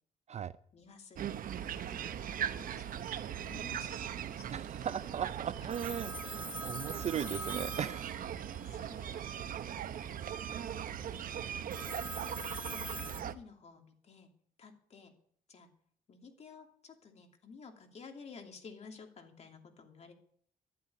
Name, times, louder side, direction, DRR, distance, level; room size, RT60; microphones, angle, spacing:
voice 1, 0.7-1.2 1.7-3.1 3.4-4.5 5.6-5.7 8.6-9.6 9.9-11.9 12.2-12.9 13.2-14.3 14.6-15.1 15.5-15.7 16.1-20.1, left 5 dB, 45° left, 4 dB, 2.6 m, -54 dB
sound 1, 1.2-13.3, right 9 dB, 65° right, 0.9 m, -40 dB
voice 2, 4.5-8.0, right 9 dB, 45° right, 15 dB, 0.5 m, -37 dB
Telephone, 5.7-8.8 11.7-13.2, right 1 dB, 10° right, 1.1 m, -43 dB
12.0 x 11.5 x 9.7 m, 0.62 s
cardioid pair, 155°, 16 cm